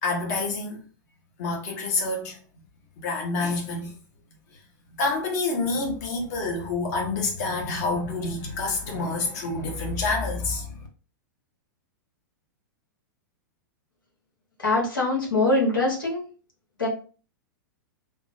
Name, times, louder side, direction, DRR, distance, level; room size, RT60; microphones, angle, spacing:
voice 1, 0.0-0.8 1.4-2.6 3.0-3.9 5.0-10.9, left 3 dB, 55° left, 1.1 m, -28 dB
voice 2, 14.6-16.3 16.8-16.9, left 2 dB, 85° left, 1.4 m, -23 dB
3.6 x 2.0 x 2.7 m
hypercardioid pair, 110°, 11 cm